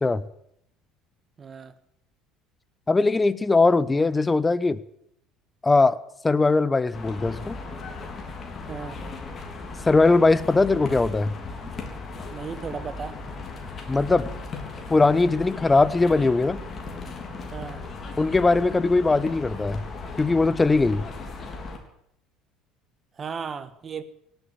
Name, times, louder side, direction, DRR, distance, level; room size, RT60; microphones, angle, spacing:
voice 1, 1.4-1.7 8.7-9.0 12.3-13.2 17.5-17.8 23.2-24.0, right 6 dB, 35° right, 13 dB, 1.4 m, -35 dB
voice 2, 2.9-4.8 5.6-6.0 6.2-7.6 9.8-11.3 13.9-14.3 14.9-16.6 18.2-19.8 20.2-21.0, left 3 dB, 20° left, 18 dB, 0.9 m, -20 dB
sound 1, 6.9-21.8, left 3 dB, 40° left, 3.6 m, -37 dB
18.0 x 8.2 x 9.6 m, 0.75 s
hypercardioid pair, 70°, 0 cm